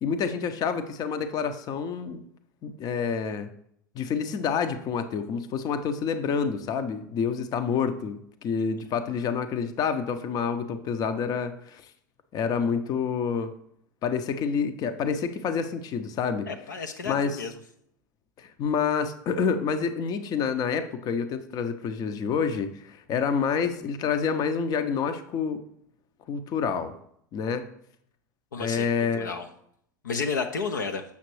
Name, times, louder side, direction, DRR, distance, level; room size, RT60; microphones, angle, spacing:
voice 1, 0.0-2.2 2.6-3.5 3.9-11.8 12.3-13.5 14.0-16.5 17.1-17.4 18.4-25.6 26.3-26.9 27.3-27.7 28.6-29.3, left 6 dB, 40° left, 10 dB, 0.6 m, -28 dB
voice 2, 16.5-17.5 28.5-29.5 30.0-31.0, left 5 dB, 80° left, 6 dB, 0.6 m, -32 dB
7.0 x 5.8 x 3.2 m, 0.71 s
figure-of-eight pair, 80°, 10 cm